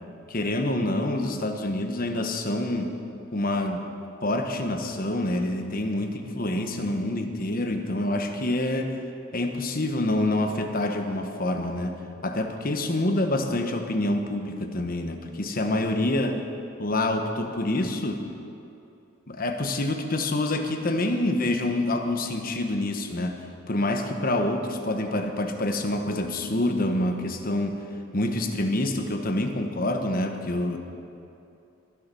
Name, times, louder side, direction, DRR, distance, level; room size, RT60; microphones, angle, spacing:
voice 1, 0.3-3.0 3.3-3.9 4.2-9.0 9.3-16.4 16.8-18.3 19.3-27.8 28.1-30.8, left 1 dB, 45° left, 5 dB, 1.1 m, -27 dB
22.0 x 7.4 x 5.4 m, 2.7 s
head